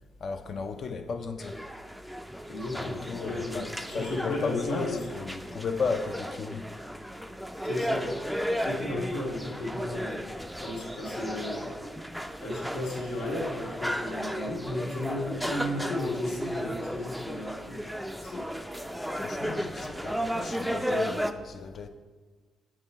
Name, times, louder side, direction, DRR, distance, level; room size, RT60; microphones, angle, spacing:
voice 1, 0.2-1.6 2.7-6.7 19.0-21.9, left 4 dB, 50° left, 0.5 m, -35 dB
sound 1, 1.4-21.3, equal, ahead, 0.4 m, -34 dB
voice 2, 2.5-5.0 7.6-8.1 8.4-10.2 10.6-11.7 12.4-17.8 18.2-18.5 20.8-20.9, left 1 dB, 85° left, 1.9 m, -34 dB
8.8 x 3.0 x 5.5 m
cardioid pair, 90°, 0 cm